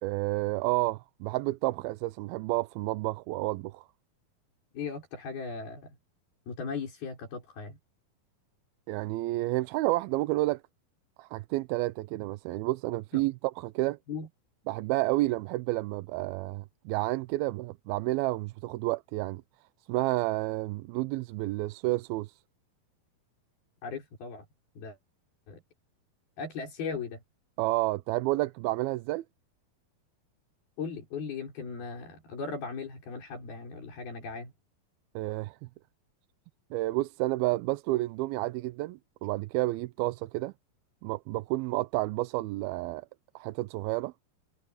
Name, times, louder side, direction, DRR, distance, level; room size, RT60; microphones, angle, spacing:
voice 1, 0.0-3.9 8.9-10.6 11.2-14.0 14.7-19.4 19.9-22.3 27.6-29.2 35.2-35.6 36.7-40.5 41.0-43.1 43.4-44.1, right 19 dB, 90° right, 2.5 m, -30 dB
voice 2, 4.7-6.0 6.5-7.8 13.1-13.2 14.1-14.3 23.8-24.5 24.8-25.0 25.5-25.6 26.4-27.2 30.8-34.5, left 5 dB, 80° left, 7.8 m, -38 dB
omnidirectional pair, 4.3 m